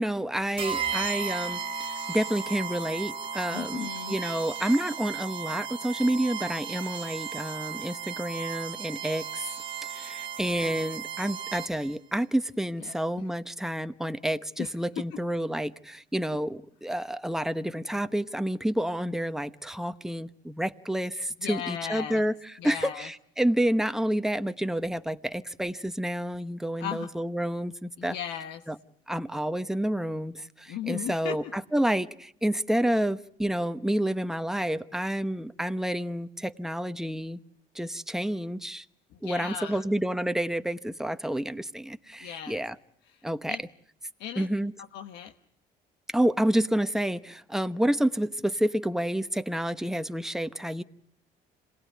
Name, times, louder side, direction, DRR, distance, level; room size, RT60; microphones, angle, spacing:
voice 1, 0.0-1.6 2.1-9.4 9.9-28.1 28.7-28.8 29.1-37.4 37.7-38.8 39.2-42.7 43.2-43.6 44.4-44.7 46.1-50.8, right 1 dB, 5° right, 10 dB, 1.0 m, -29 dB
sound 1, 0.6-11.9, right 6 dB, 30° right, 1.5 m, -35 dB
voice 2, 3.5-4.2 12.8-13.0 14.6-14.7 15.1-15.2 21.4-22.2 22.6-23.1 26.8-27.1 28.0-28.6 30.7-31.5 39.1-39.8 42.2-42.6 43.1-43.6 44.2-44.5 44.8-45.3, left 10 dB, 90° left, 6 dB, 1.2 m, -37 dB
27.0 x 19.0 x 9.5 m, 0.68 s
cardioid pair, 110°, 17 cm